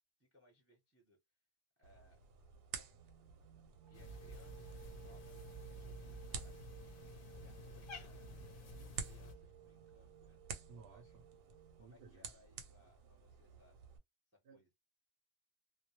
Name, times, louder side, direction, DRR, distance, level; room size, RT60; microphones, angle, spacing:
voice 1, 0.2-1.2 1.8-2.2 2.7-2.9 3.9-6.9 7.3-8.3 8.6-11.2 11.8-13.8 14.3-14.7, left 1 dB, 10° right, 0.6 m, -69 dB
sound 1, 1.8-14.0, right 5 dB, 85° right, 1.0 m, -52 dB
sound 2, 2.9-11.8, right 12 dB, 40° right, 0.3 m, -60 dB
Cat, 3.9-9.3, left 1 dB, 55° left, 0.7 m, -51 dB
voice 2, 10.7-11.2 11.8-12.3 14.4-14.6, right 5 dB, 60° right, 0.7 m, -58 dB
2.3 x 2.0 x 2.8 m
omnidirectional pair, 1.4 m